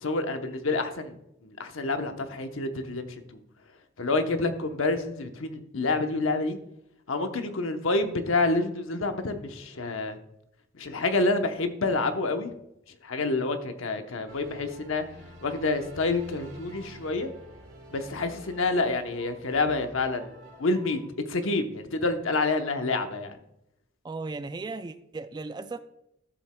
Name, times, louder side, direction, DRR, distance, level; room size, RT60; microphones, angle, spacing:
voice 1, 0.0-3.2 4.0-6.6 7.1-10.2 10.8-12.5 13.0-15.0 15.4-17.3 17.9-21.0 21.3-23.4, left 3 dB, 75° left, 7 dB, 0.9 m, -28 dB
sound 1, 14.3-21.1, equal, 65° right, 2.2 m, -48 dB
voice 2, 24.0-25.8, right 3 dB, 20° right, 12 dB, 0.3 m, -36 dB
13.0 x 7.3 x 2.2 m, 0.83 s
head